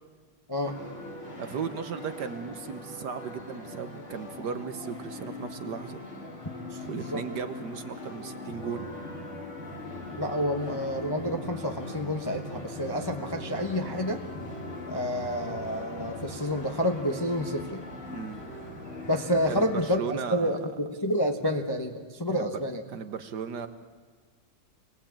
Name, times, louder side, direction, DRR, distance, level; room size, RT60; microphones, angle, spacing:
sound 1, 0.6-19.9, left 2 dB, 75° left, 4.4 m, -40 dB
voice 1, 1.4-6.0 6.9-8.9 18.1-18.5 19.5-20.7 22.3-22.6 22.9-23.7, right 6 dB, 60° right, 10 dB, 1.4 m, -36 dB
voice 2, 6.7-7.2 10.2-14.2 14.9-17.8 19.0-22.8, equal, 20° left, 4 dB, 0.7 m, -29 dB
24.5 x 18.5 x 8.8 m, 1.5 s
omnidirectional pair, 2.3 m